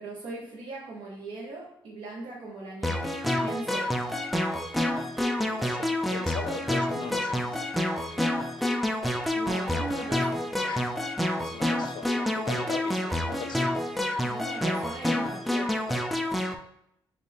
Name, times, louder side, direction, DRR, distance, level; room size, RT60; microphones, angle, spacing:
voice 1, 0.0-4.0 9.3-10.5 14.2-15.9, right 3 dB, 65° right, -4 dB, 0.9 m, -39 dB
sound 1, 2.8-16.5, left 1 dB, ahead, 0.3 m, -28 dB
voice 2, 5.5-8.5 10.6-10.9 11.2-13.8, left 5 dB, 60° left, 6 dB, 0.5 m, -40 dB
4.1 x 3.2 x 3.4 m, 0.77 s
cardioid pair, 135°, 9 cm